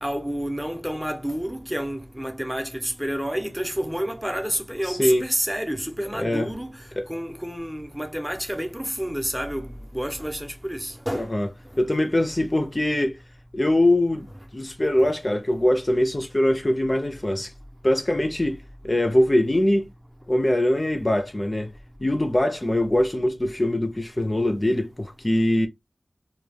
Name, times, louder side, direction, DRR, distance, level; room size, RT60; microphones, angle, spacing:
voice 1, 0.0-6.7 7.1-9.7 9.9-11.3, equal, 10° right, 0.7 m, -29 dB
voice 2, 4.9-5.3 6.1-6.5 7.0-7.1 11.1-11.5 11.8-13.1 13.5-14.3 14.5-17.5 17.8-18.6 18.8-19.9 20.3-21.7 22.0-25.7, left 1 dB, 30° left, 0.5 m, -22 dB
2.3 x 2.2 x 3.3 m
wide cardioid pair, 55°, 0 cm